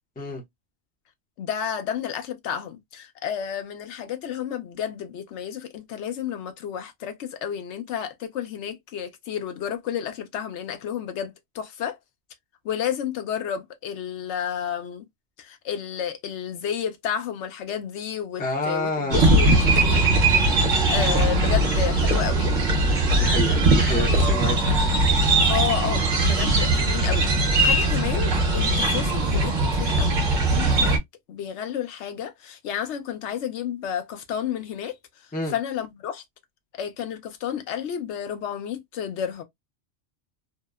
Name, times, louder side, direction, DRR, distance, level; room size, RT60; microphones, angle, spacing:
voice 1, 1.4-12.0 12.6-15.0 15.4-20.1 20.9-22.5 23.9-24.8 25.5-31.0 31.3-34.9 35.5-36.2 36.7-39.4, left 9 dB, 75° left, 0.8 m, -31 dB
voice 2, 18.4-19.2 20.5-20.6 23.2-24.6 35.3-35.5, left 2 dB, 10° left, 0.4 m, -28 dB
sound 1, 19.1-31.0, right 2 dB, 45° right, 0.8 m, -20 dB
2.7 x 2.0 x 2.2 m
omnidirectional pair, 1.2 m